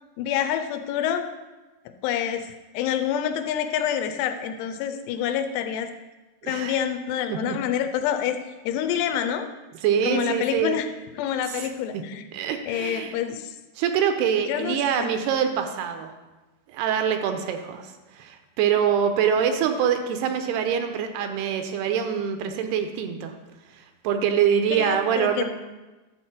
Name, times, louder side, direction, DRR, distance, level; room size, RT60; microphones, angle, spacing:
voice 1, 0.2-1.3 2.0-2.5 2.7-5.9 6.4-8.4 8.7-9.5 10.1-10.9 11.2-12.2 12.7-13.6 14.5-15.1 24.7-25.4, left 9 dB, 90° left, 8 dB, 2.8 m, -27 dB
voice 2, 6.4-6.8 7.3-7.6 9.8-10.8 11.5-11.7 11.9-12.0 12.3-13.2 13.8-16.1 16.7-23.3 24.0-25.4, right 8 dB, 85° right, 7 dB, 2.7 m, -24 dB
11.0 x 4.3 x 7.4 m, 1.1 s
omnidirectional pair, 4.7 m